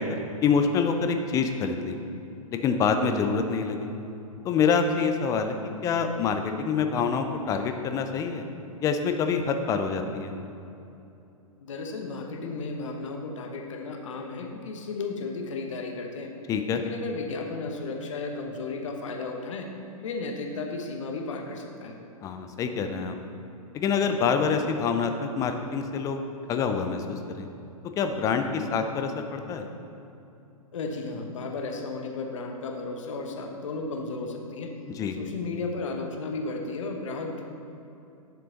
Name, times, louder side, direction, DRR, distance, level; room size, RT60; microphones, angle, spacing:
voice 1, 0.0-2.0 2.5-3.9 4.4-5.6 5.8-8.4 8.8-10.3 16.5-16.8 22.2-23.2 23.7-26.2 26.5-27.5 28.0-29.7 35.0-35.2, left 5 dB, 20° left, 6 dB, 0.5 m, -26 dB
voice 2, 11.6-16.3 16.7-19.7 20.0-22.0 30.7-34.7 35.2-37.4, left 3 dB, 55° left, 3 dB, 1.1 m, -34 dB
9.6 x 6.8 x 3.8 m, 2.8 s
figure-of-eight pair, 110°, 19 cm